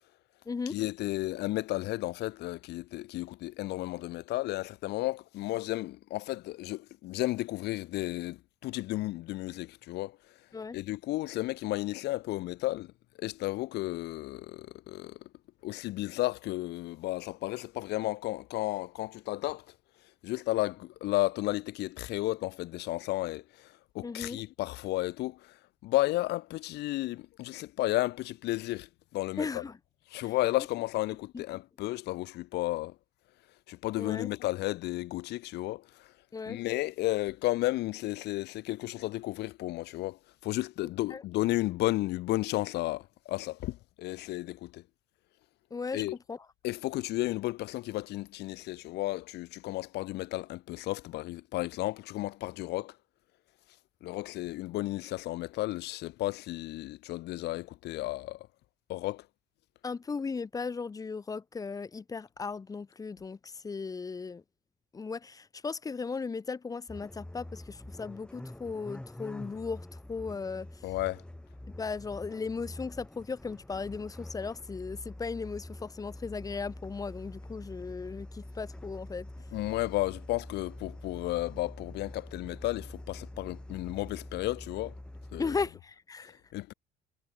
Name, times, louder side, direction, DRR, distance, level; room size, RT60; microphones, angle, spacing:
voice 1, 0.7-10.2 10.7-12.9 13.2-15.2 15.6-19.6 20.2-29.6 30.1-32.9 33.7-36.1 36.5-44.8 45.9-46.2 46.6-52.9 54.0-58.5 58.9-59.3 70.8-71.2 79.5-84.9 85.3-85.6 86.5-86.7, left 17 dB, 80° left, 1.4 m, -33 dB
voice 2, 24.0-24.4 29.4-29.7 31.3-31.4 34.0-34.3 36.3-36.6 41.1-41.2 45.7-46.0 46.3-46.4 59.8-64.4 64.9-70.7 71.8-79.3 85.4-86.4, left 4 dB, 20° left, 0.6 m, -36 dB
sound 1, 66.9-85.7, left 1 dB, 5° left, 1.1 m, -46 dB
cardioid pair, 110°, 17 cm